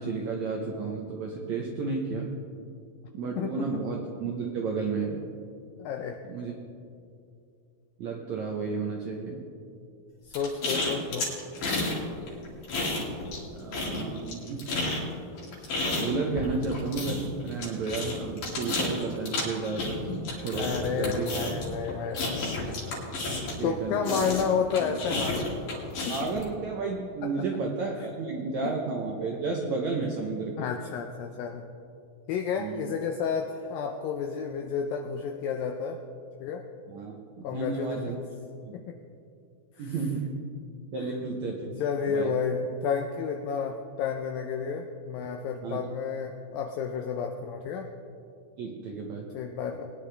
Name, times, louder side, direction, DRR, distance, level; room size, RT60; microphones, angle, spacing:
voice 1, 0.0-2.3 3.1-5.3 6.3-6.5 8.0-9.4 13.5-14.6 16.0-21.3 23.6-24.0 26.1-30.7 32.6-33.0 36.8-38.2 38.6-38.8 39.8-40.4 40.9-41.8 42.1-42.4 45.6-45.8 48.6-49.3, right 4 dB, 85° right, 1 dB, 1.5 m, -32 dB
voice 2, 3.4-3.8 5.8-6.2 10.3-11.3 20.6-22.7 23.6-25.5 26.1-26.3 28.0-28.1 28.6-28.7 30.6-31.7 32.3-36.0 36.4-36.7 37.4-38.2 38.7-39.0 39.8-39.9 41.8-47.9 49.3-49.9, left 6 dB, 80° left, 4 dB, 2.1 m, -31 dB
sound 1, 10.3-12.0 12.3-13.4 13.7-23.7 24.0-26.4, left 2 dB, 60° left, 3.7 m, -31 dB
21.0 x 10.0 x 3.3 m, 2.5 s
omnidirectional pair, 4.6 m